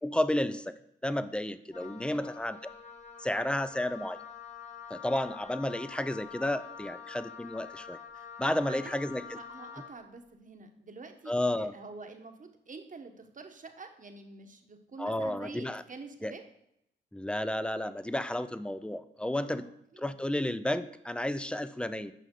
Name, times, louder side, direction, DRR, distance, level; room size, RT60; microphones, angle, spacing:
voice 1, 0.0-2.6 3.2-4.2 4.9-8.0 8.4-9.4 11.3-11.7 15.0-15.8 16.2-16.3 17.1-19.7 20.0-22.1, left 1 dB, 5° left, 13 dB, 0.5 m, -32 dB
Wind instrument woodwind instrument, 1.7-10.0, left 7 dB, 35° left, 1.3 m, -47 dB
voice 2, 1.8-2.3 8.1-8.9 9.2-16.4 19.3-20.2, right 4 dB, 40° right, 5 dB, 1.2 m, -47 dB
9.2 x 5.5 x 3.8 m, 0.77 s
supercardioid pair, 55°, 20 cm